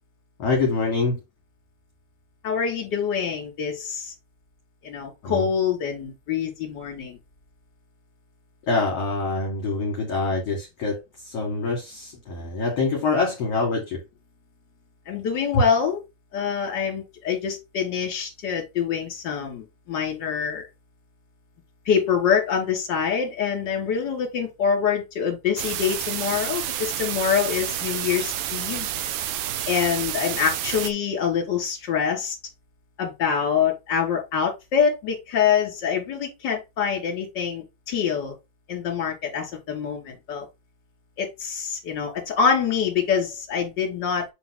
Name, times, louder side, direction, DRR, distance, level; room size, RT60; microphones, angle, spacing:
voice 1, 0.4-1.2 5.2-5.5 8.7-14.0 15.5-15.6, left 3 dB, 50° left, 2.4 m, -25 dB
voice 2, 2.4-4.1 4.8-7.2 15.1-16.0 16.3-20.6 21.8-28.9 29.7-32.4 33.0-38.3 38.7-40.5 41.2-44.3, left 7 dB, 35° left, 2.8 m, -25 dB
sound 1, 25.6-30.9, right 11 dB, 85° right, 2.5 m, -29 dB
8.4 x 3.9 x 3.8 m
omnidirectional pair, 4.0 m